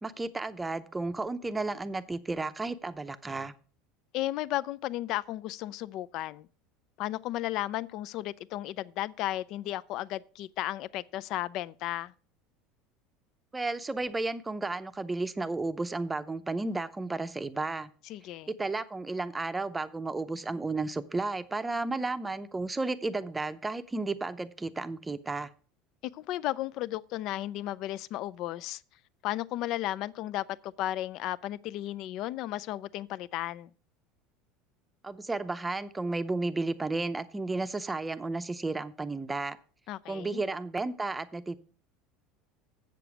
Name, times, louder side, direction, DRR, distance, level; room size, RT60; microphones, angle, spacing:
voice 1, 0.0-3.5 13.5-17.9 18.5-25.5 35.0-39.6 40.1-41.6, right 3 dB, 10° right, 0.6 m, -33 dB
voice 2, 4.1-6.5 7.0-12.1 18.1-18.5 26.1-28.8 29.2-33.7 39.9-40.4, left 15 dB, 55° left, 0.4 m, -34 dB
7.9 x 6.8 x 6.0 m
supercardioid pair, 125°, 0 cm